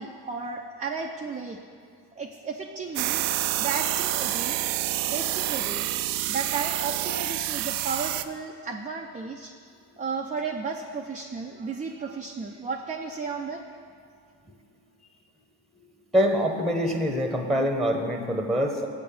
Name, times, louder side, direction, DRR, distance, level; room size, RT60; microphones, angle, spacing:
voice 1, 0.0-1.6 2.2-3.3 3.6-4.6 5.1-5.9 6.3-9.5 10.0-13.7, right 5 dB, 15° right, 2 dB, 0.4 m, -34 dB
sound 1, 3.0-8.2, right 14 dB, 75° right, 0.5 m, -28 dB
voice 2, 16.1-18.9, equal, ahead, 4 dB, 0.9 m, -24 dB
8.3 x 6.9 x 5.5 m, 2.3 s
hypercardioid pair, 65°, 50 cm